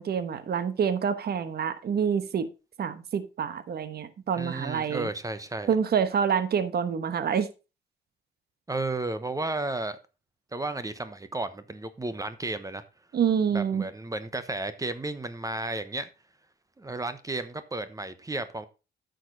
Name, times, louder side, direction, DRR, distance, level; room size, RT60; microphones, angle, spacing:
voice 1, 0.0-2.5 2.8-5.1 5.7-7.5 13.1-13.9, right 7 dB, 55° right, 1.2 m, -27 dB
voice 2, 4.3-5.7 8.7-10.0 10.5-12.8 13.5-16.1 16.8-18.7, right 2 dB, 15° right, 0.9 m, -33 dB
9.8 x 6.5 x 3.9 m
cardioid pair, 90°, 20 cm